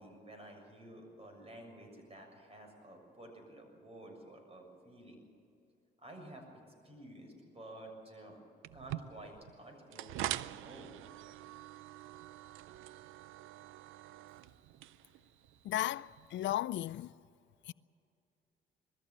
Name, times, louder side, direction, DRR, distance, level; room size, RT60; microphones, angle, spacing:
voice 1, 0.0-5.3 6.0-6.5 6.8-8.4 8.7-10.9, right 1 dB, 30° right, 6.9 m, -52 dB
sound 1, 8.6-16.5, right 14 dB, 90° right, 0.5 m, -45 dB
voice 2, 15.6-17.1 17.7-17.8, left 14 dB, 70° left, 0.5 m, -35 dB
20.5 x 14.5 x 8.9 m
cardioid pair, 90°, 20 cm